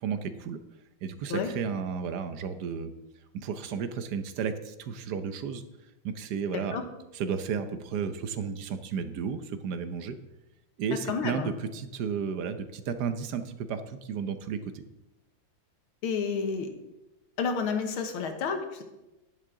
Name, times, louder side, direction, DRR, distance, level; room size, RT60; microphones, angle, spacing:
voice 1, 0.0-0.6 1.0-2.9 3.3-5.6 6.0-6.8 7.1-10.2 10.8-14.8, right 6 dB, 65° right, 10 dB, 1.2 m, -33 dB
voice 2, 11.1-11.5 16.0-16.7 17.4-18.8, left 5 dB, 90° left, 6 dB, 2.0 m, -30 dB
10.5 x 10.5 x 3.7 m, 0.98 s
omnidirectional pair, 2.2 m